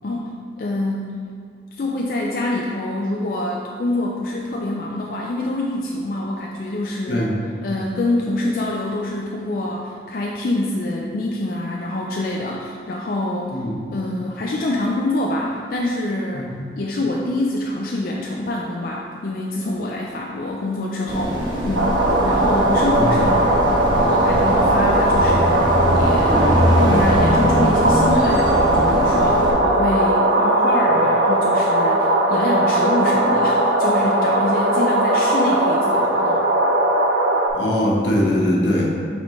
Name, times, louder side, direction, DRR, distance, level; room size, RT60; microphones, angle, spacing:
voice 1, 0.6-1.2 1.7-7.3 7.6-13.6 13.9-23.5 24.0-26.5 26.8-36.4, left 1 dB, 50° left, -2 dB, 0.4 m, -25 dB
sound 1, 21.1-29.5, equal, 25° right, 1.2 m, -22 dB
sound 2, 21.7-37.5, right 1 dB, 90° right, 0.7 m, -18 dB
voice 2, 23.0-23.3 37.5-38.9, left 1 dB, 80° left, -3 dB, 1.1 m, -20 dB
8.7 x 3.6 x 3.1 m, 2.1 s
head